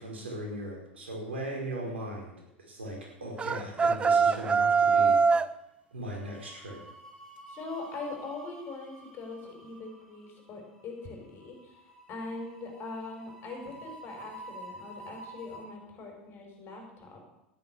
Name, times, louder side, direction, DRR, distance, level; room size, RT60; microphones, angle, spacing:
voice 1, 0.0-5.2 5.9-6.8, right 1 dB, 80° right, 0 dB, 4.9 m, -38 dB
sound 1, 3.4-5.5, right 5 dB, 20° right, 0.5 m, -23 dB
sound 2, 3.7-4.4 4.6-4.9 6.1-15.6, right 1 dB, 5° left, 5.5 m, -50 dB
voice 2, 7.5-11.8 12.1-17.2, left 3 dB, 40° left, 2 dB, 5.4 m, -41 dB
13.0 x 11.0 x 6.9 m, 0.90 s
figure-of-eight pair, 85°, 6 cm